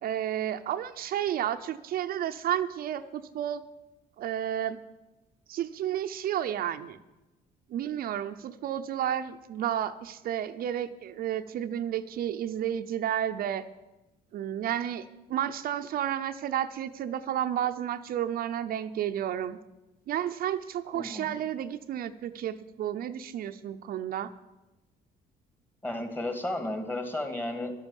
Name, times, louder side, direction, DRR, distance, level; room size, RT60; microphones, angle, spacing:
voice 1, 0.0-3.6 4.2-4.8 5.5-7.0 7.7-13.6 14.3-19.6 20.1-24.3, right 10 dB, 60° right, 8 dB, 0.7 m, -31 dB
voice 2, 20.9-21.4 25.8-27.7, left 1 dB, 10° left, 6 dB, 2.2 m, -33 dB
12.0 x 10.5 x 7.2 m, 1.0 s
cardioid pair, 110°, 17 cm